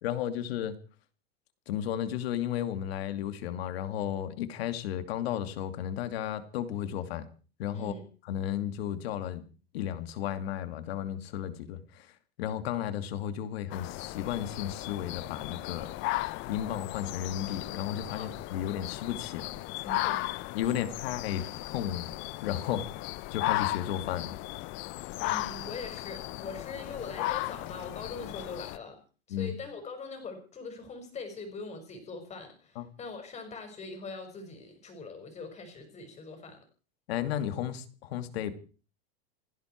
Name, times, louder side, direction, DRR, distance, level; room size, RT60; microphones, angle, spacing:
voice 1, 0.0-0.8 1.7-7.3 7.6-7.9 8.3-9.4 9.7-15.9 16.5-19.6 20.5-22.1 22.4-22.9 23.3-24.4 29.3-29.6 32.8-32.9 37.1-38.5, left 10 dB, 70° left, 10 dB, 2.6 m, -33 dB
sound 1, 13.7-28.8, left 19 dB, 40° left, 0.7 m, -36 dB
voice 2, 19.8-20.2 20.6-20.8 25.2-29.0 29.3-36.6, left 4 dB, 20° left, 6 dB, 6.0 m, -42 dB
29.0 x 10.5 x 4.7 m, 0.39 s
supercardioid pair, 140°, 32 cm